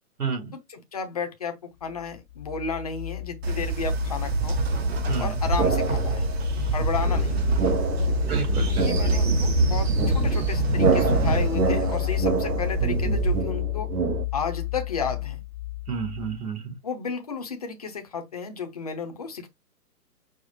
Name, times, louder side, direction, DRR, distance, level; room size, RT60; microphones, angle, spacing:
voice 1, 0.2-0.5 5.1-5.3 6.4-6.7 8.2-8.9 15.9-16.8, right 6 dB, 65° right, 1.9 m, -31 dB
voice 2, 0.7-4.6 5.2-6.3 6.7-7.5 8.7-13.9 14.3-15.4 16.8-19.5, left 5 dB, 25° left, 0.5 m, -33 dB
sound 1, 1.9-16.4, left 18 dB, 75° left, 0.5 m, -30 dB
Train, 3.4-13.4, right 5 dB, 40° right, 0.9 m, -26 dB
sound 2, 5.6-6.4 7.0-14.2, right 5 dB, 85° right, 0.9 m, -28 dB
4.8 x 2.0 x 4.1 m
figure-of-eight pair, 135°, 47 cm